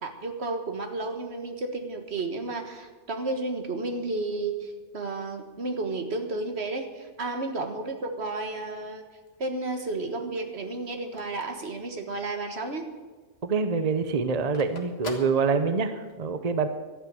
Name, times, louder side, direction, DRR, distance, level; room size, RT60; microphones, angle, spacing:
voice 1, 0.0-9.0 9.4-12.9, right 2 dB, 65° right, 5 dB, 1.8 m, -32 dB
Telephone, 9.1-12.5 12.9-13.0 13.2-16.1, left 2 dB, 60° left, 1.9 m, -44 dB
voice 2, 13.4-16.7, right 5 dB, 40° right, 9 dB, 0.8 m, -26 dB
12.5 x 8.9 x 9.0 m, 1.4 s
omnidirectional pair, 1.2 m